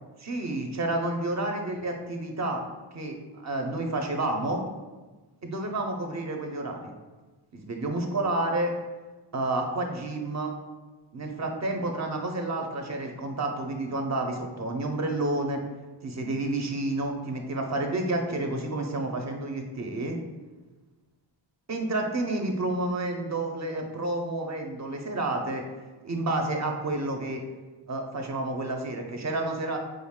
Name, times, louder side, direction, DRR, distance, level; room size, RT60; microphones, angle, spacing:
voice 1, 0.2-2.6 2.9-4.6 5.4-6.9 7.5-8.7 9.3-10.5 11.1-15.6 16.0-20.2 21.7-25.6 26.0-27.4 27.9-29.8, right 2 dB, 40° right, 3 dB, 0.6 m, -30 dB
5.0 x 2.3 x 3.6 m, 1.2 s
wide cardioid pair, 105°, 45 cm